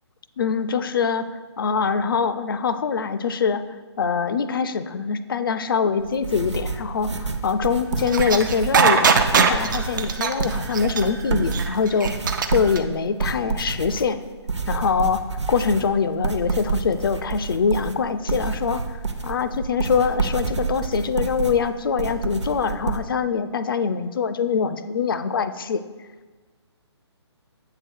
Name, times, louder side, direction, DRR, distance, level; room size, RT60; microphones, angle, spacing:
voice 1, 0.4-3.6 4.0-12.1 12.5-14.2 14.7-15.2 15.5-19.0 19.2-25.8, left 6 dB, 50° left, 12 dB, 0.4 m, -24 dB
sound 1, 6.0-23.0, right 4 dB, 80° right, 0.8 m, -29 dB
sound 2, 8.1-12.8, right 6 dB, 45° right, 0.6 m, -20 dB
7.8 x 3.8 x 6.1 m, 1.4 s
figure-of-eight pair, 140°, 15 cm